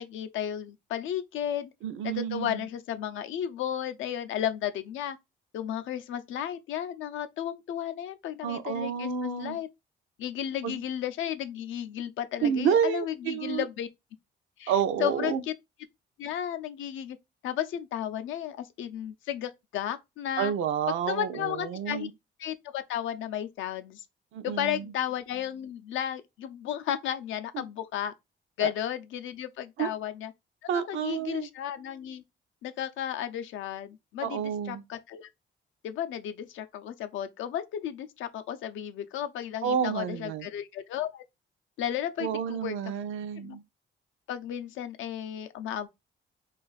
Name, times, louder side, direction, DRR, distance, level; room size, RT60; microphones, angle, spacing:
voice 1, 0.0-1.7 2.0-5.2 5.5-9.7 10.2-13.9 14.6-14.7 15.0-15.5 16.2-17.2 17.4-20.5 21.1-22.1 22.4-24.0 24.4-28.1 28.6-30.3 30.7-32.2 32.6-35.3 35.8-41.2 41.8-42.7 43.4-43.6 44.3-45.9, left 10 dB, 80° left, 0.5 m, -33 dB
voice 2, 1.8-2.7 8.4-9.6 10.6-10.8 12.4-13.6 14.7-15.4 20.4-22.1 24.3-24.9 27.5-27.6 28.6-28.7 29.8-29.9 30.7-31.5 34.2-34.8 39.6-40.5 42.2-43.6, right 8 dB, 85° right, 0.5 m, -29 dB
2.4 x 2.4 x 3.8 m
cardioid pair, 90°, 20 cm